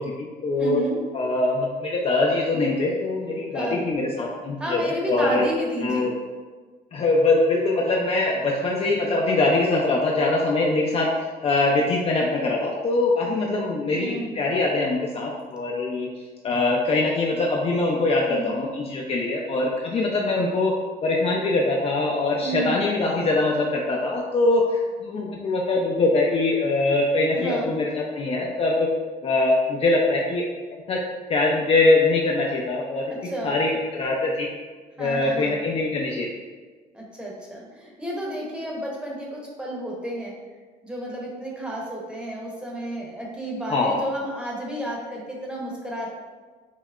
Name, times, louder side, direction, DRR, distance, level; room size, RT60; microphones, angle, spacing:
voice 1, 0.0-0.8 1.1-5.5 5.8-6.1 6.9-11.1 11.4-16.1 16.4-20.7 21.0-28.9 29.2-30.5 30.7-31.0 31.3-33.0 33.4-34.5 35.0-36.3 43.7-44.0, left 2 dB, 35° left, -2 dB, 0.4 m, -23 dB
voice 2, 0.6-1.0 3.5-3.8 4.6-6.1 13.9-14.3 18.3-18.6 22.4-22.8 27.3-27.7 33.1-33.6 35.0-35.6 36.9-40.3 40.8-46.1, right 1 dB, 5° right, -3 dB, 0.8 m, -31 dB
5.5 x 2.0 x 2.3 m, 1.4 s
cardioid pair, 110°, 17 cm